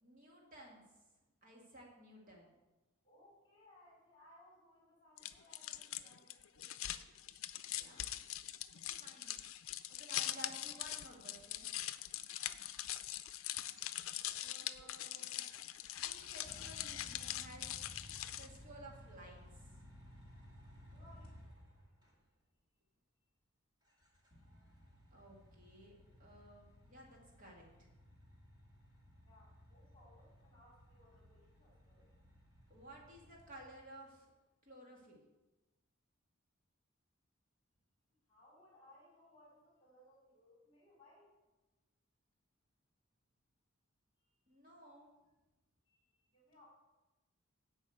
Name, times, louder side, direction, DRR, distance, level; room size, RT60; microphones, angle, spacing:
voice 1, 0.0-0.8 1.4-2.6 7.8-8.2 8.8-9.4 9.9-11.7 14.4-15.4 16.0-17.7 18.4-19.6 25.1-27.9 32.7-34.3 34.6-35.2 44.5-45.1, right 1 dB, 40° right, -1 dB, 2.2 m, -56 dB
voice 2, 3.0-6.8 14.8-15.2 20.9-21.4 29.2-32.1 38.3-41.3 44.2-44.5 45.8-46.6, left 1 dB, 25° left, -5 dB, 3.4 m, -65 dB
sound 1, 5.2-18.6, left 13 dB, 75° left, 0.5 m, -43 dB
sound 2, 15.8-22.1 23.9-34.0, equal, 20° right, 1.9 m, -58 dB
8.3 x 5.5 x 7.9 m, 1.1 s
head